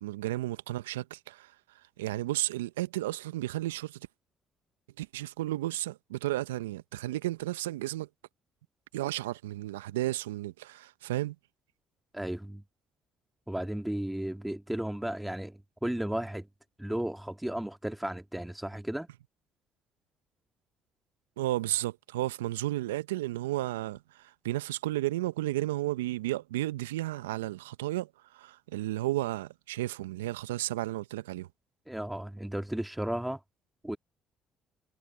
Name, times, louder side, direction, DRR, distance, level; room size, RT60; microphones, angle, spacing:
voice 1, 0.0-1.5 2.0-4.0 5.0-8.1 8.9-11.3 21.4-24.0 24.4-28.1 28.3-31.5, right 16 dB, 80° right, 1.0 m, -33 dB
voice 2, 12.1-12.6 13.5-16.5 16.8-19.1 31.9-33.4 33.8-34.0, right 1 dB, 5° right, 2.3 m, -34 dB
hypercardioid pair, 50°, 0 cm